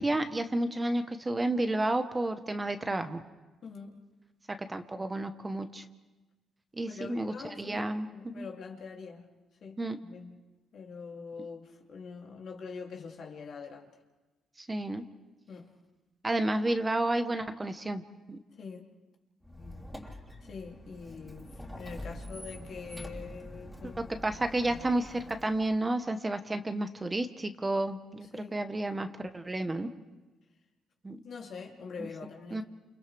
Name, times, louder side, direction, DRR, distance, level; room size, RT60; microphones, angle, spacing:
voice 1, 0.0-3.2 4.5-5.8 6.7-8.1 8.3-8.4 9.8-10.0 14.6-15.0 16.2-18.0 18.3-18.4 19.9-20.0 24.2-29.9 31.0-31.2 32.0-32.1 32.5-32.6, right 1 dB, 20° right, 8 dB, 1.1 m, -31 dB
voice 2, 3.6-4.0 6.9-9.3 9.6-10.4 10.7-13.9 15.5-15.7 18.6-18.9 20.4-24.1 28.2-28.5 31.2-32.6, left 5 dB, 60° left, 1 dB, 2.7 m, -44 dB
Squeak, 19.4-25.8, left 1 dB, ahead, 3.2 m, -45 dB
29.5 x 28.5 x 3.4 m, 1.2 s
cardioid pair, 90°, 0 cm